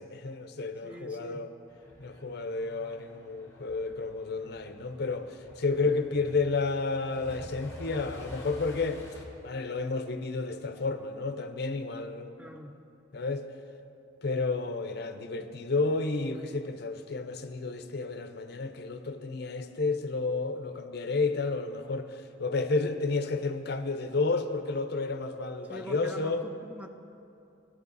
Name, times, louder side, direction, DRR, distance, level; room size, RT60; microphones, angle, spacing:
voice 1, 0.0-1.5 2.0-9.0 9.4-12.4 13.1-13.5 14.2-26.4, left 3 dB, 55° left, 9 dB, 0.6 m, -31 dB
voice 2, 0.8-1.4 12.4-12.8 25.7-26.9, equal, 5° right, 5 dB, 0.5 m, -43 dB
Truck, 1.7-9.3, left 1 dB, 15° left, 1.3 m, -48 dB
15.0 x 10.5 x 4.1 m, 2.8 s
head